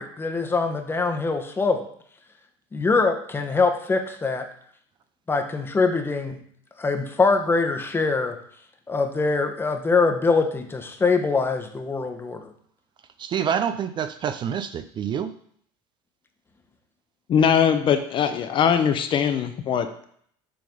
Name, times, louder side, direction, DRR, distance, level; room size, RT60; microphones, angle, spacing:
voice 1, 0.0-1.9 2.7-4.5 5.3-6.4 6.8-8.4 8.9-12.5, left 4 dB, 15° left, 6 dB, 1.0 m, -23 dB
voice 2, 13.2-15.3, right 8 dB, 40° right, 11 dB, 0.5 m, -27 dB
voice 3, 17.3-20.0, left 7 dB, 40° left, 9 dB, 0.7 m, -21 dB
7.7 x 3.8 x 5.4 m, 0.63 s
supercardioid pair, 105°, 13 cm